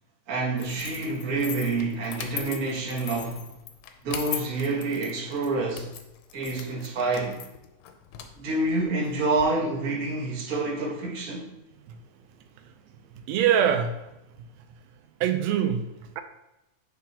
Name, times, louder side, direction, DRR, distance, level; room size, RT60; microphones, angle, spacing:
voice 1, 0.3-3.6 4.0-6.0 6.3-7.4 8.4-11.5, right 3 dB, 45° right, 1.1 m, -28 dB
sound 1, 0.6-9.4, left 9 dB, 85° left, 2.0 m, -40 dB
voice 2, 13.3-14.0 15.2-16.2, right 9 dB, 75° right, 1.7 m, -23 dB
7.9 x 4.6 x 2.8 m
omnidirectional pair, 3.3 m